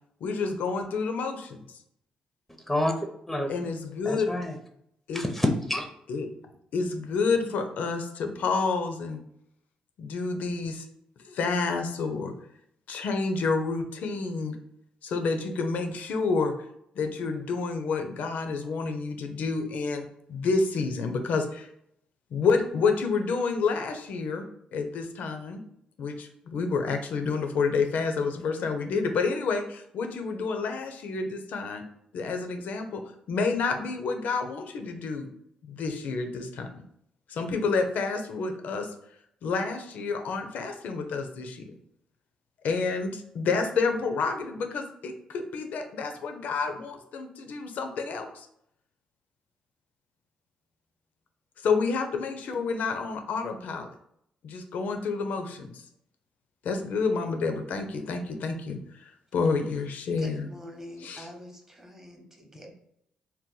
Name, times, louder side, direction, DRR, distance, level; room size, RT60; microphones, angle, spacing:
voice 1, 0.2-1.6 3.5-4.3 5.1-5.3 6.1-9.2 10.0-10.9 11.2-12.3 12.9-14.6 15.0-16.5 17.0-21.7 22.3-24.4 24.7-25.6 26.0-31.8 32.1-33.0 33.3-35.3 35.6-36.7 37.3-38.9 39.4-41.7 42.6-48.5 51.6-53.9 54.4-55.8 56.6-60.5 61.0-61.3, left 4 dB, 70° left, 6 dB, 0.4 m, -29 dB
voice 2, 2.7-3.5 4.0-4.5 5.1-5.9, left 1 dB, 5° left, 4 dB, 0.5 m, -28 dB
voice 3, 60.2-62.7, equal, 15° right, 2 dB, 0.8 m, -45 dB
2.7 x 2.2 x 3.7 m, 0.74 s
supercardioid pair, 60°, 3 cm